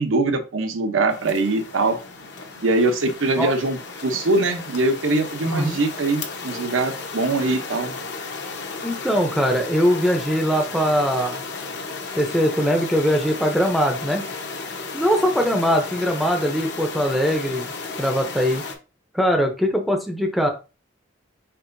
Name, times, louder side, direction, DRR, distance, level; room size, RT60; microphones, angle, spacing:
voice 1, 0.0-2.0 2.6-7.9, right 2 dB, 80° right, 7 dB, 0.7 m, -22 dB
sound 1, 1.1-18.7, left 4 dB, 55° left, 0.8 m, -34 dB
voice 2, 5.4-5.8 8.8-11.4 12.2-14.2 14.9-17.7 18.0-18.6 19.1-20.5, equal, ahead, 3 dB, 0.5 m, -21 dB
4.5 x 3.8 x 2.6 m, 0.31 s
head